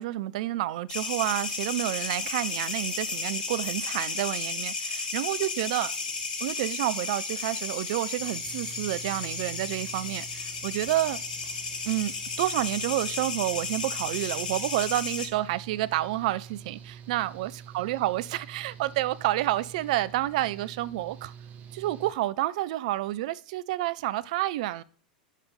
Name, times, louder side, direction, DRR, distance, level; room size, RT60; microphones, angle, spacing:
voice 1, 0.0-5.9 6.4-11.2 11.8-21.3 21.7-24.8, right 15 dB, 60° right, 0.4 m, -29 dB
sound 1, 0.9-15.3, left 4 dB, 75° left, 1.3 m, -33 dB
sound 2, 2.2-3.9 5.1-7.8, left 3 dB, 25° left, 2.5 m, -53 dB
Engine / Mechanical fan, 8.2-22.1, right 7 dB, 35° right, 0.9 m, -47 dB
6.5 x 5.1 x 5.4 m
figure-of-eight pair, 85°, 4 cm